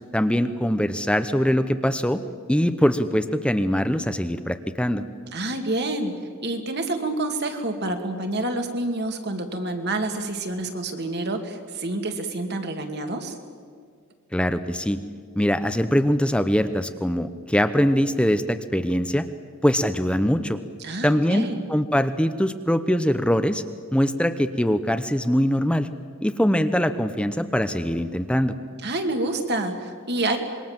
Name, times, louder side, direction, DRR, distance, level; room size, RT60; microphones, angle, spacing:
voice 1, 0.1-2.2 2.5-5.1 14.3-15.0 15.4-19.2 19.6-20.6 21.0-23.6 23.9-25.9 26.2-28.6, equal, 5° left, 9 dB, 0.8 m, -22 dB
voice 2, 5.3-13.4 20.8-21.6 28.8-30.4, right 2 dB, 50° right, 5 dB, 2.4 m, -28 dB
26.5 x 22.5 x 7.4 m, 2.1 s
head